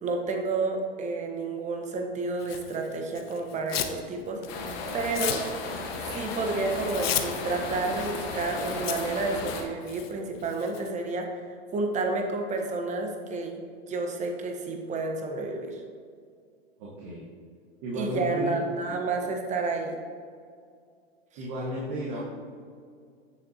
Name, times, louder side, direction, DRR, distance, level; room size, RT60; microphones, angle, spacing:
voice 1, 0.0-5.4 6.1-11.4 11.7-15.8 17.9-19.9, right 3 dB, 25° right, 3 dB, 1.2 m, -30 dB
Tearing, 2.4-4.0 4.4-10.9, left 11 dB, 70° left, 0.8 m, -36 dB
sound 1, 4.5-9.6, left 3 dB, 45° left, 1.4 m, -35 dB
voice 2, 16.8-17.3 17.8-18.6 21.4-22.2, right 1 dB, 45° right, -5 dB, 1.8 m, -33 dB
9.5 x 6.8 x 2.9 m, 2.2 s
hypercardioid pair, 115°, 32 cm